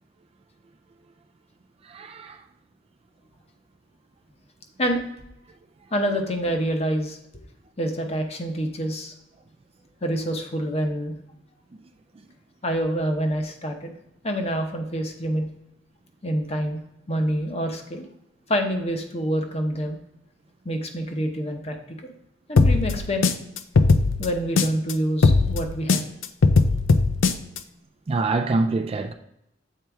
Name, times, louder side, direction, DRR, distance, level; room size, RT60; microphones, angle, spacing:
voice 1, 1.9-2.4 28.1-29.1, right 3 dB, 30° right, 0.3 m, -25 dB
voice 2, 5.9-7.2 7.8-9.1 10.0-11.2 12.6-13.9 14.2-15.5 16.2-16.8 17.1-18.0 18.5-20.0 20.6-21.8 22.0-22.1 22.5-23.3 24.2-26.1, equal, 35° left, 0.8 m, -26 dB
sound 1, 22.6-24.9 25.2-27.6, left 3 dB, 90° left, 0.5 m, -19 dB
7.5 x 4.4 x 3.4 m
head